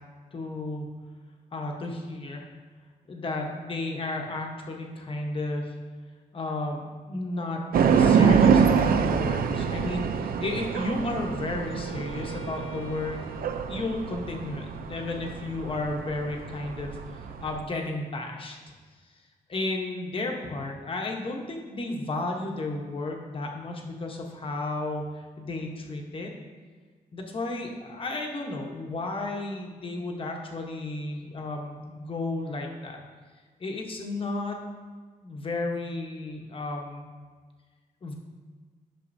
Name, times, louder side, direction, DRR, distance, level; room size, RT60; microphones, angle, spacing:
voice 1, 0.3-0.9 1.5-2.5 3.1-5.7 6.3-7.6 8.0-13.2 13.7-18.6 19.5-26.3 27.1-33.0 33.6-34.6 35.2-37.1 38.0-38.1, left 2 dB, 35° left, 1 dB, 0.9 m, -33 dB
sound 1, 7.7-17.6, right 6 dB, 80° right, 0.5 m, -25 dB
Wind instrument woodwind instrument, 10.7-14.6, right 6 dB, 45° right, 2.1 m, -47 dB
11.0 x 6.2 x 2.6 m, 1.5 s
wide cardioid pair, 155°, 15 cm